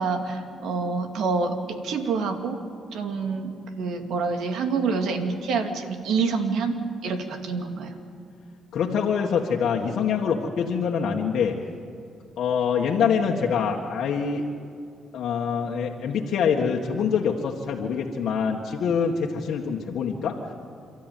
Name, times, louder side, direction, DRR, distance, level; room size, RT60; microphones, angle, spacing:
voice 1, 0.0-2.6 2.9-7.9, right 4 dB, 75° right, 5 dB, 2.6 m, -27 dB
voice 2, 8.7-11.6 12.4-14.4 15.1-20.4, left 6 dB, 70° left, -1 dB, 1.8 m, -25 dB
29.0 x 13.5 x 9.4 m, 2.4 s
cardioid pair, 90°, 0 cm